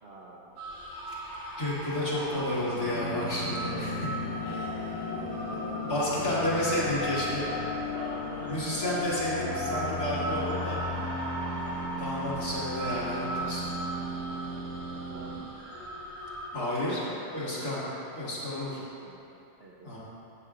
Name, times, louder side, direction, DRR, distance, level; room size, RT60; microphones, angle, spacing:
voice 1, 0.0-0.6 3.6-4.0 4.4-4.8 5.0-6.3 7.9-9.2 10.0-10.8 15.1-15.4 16.5-18.0 18.8-19.3 19.6-20.0, right 2 dB, 50° right, -5 dB, 0.7 m, -46 dB
sound 1, 0.6-16.5, equal, 85° right, 2.5 m, -38 dB
voice 2, 1.6-3.9 4.4-4.7 5.9-7.5 8.4-10.8 12.0-13.7 16.5-17.0 17.3-17.8 18.1-18.8 19.8-20.0, left 1 dB, 55° left, -9 dB, 2.6 m, -31 dB
sound 2, 2.3-15.3, left 1 dB, 90° left, 2.9 m, -36 dB
14.0 x 7.4 x 2.5 m, 2.8 s
omnidirectional pair, 1.9 m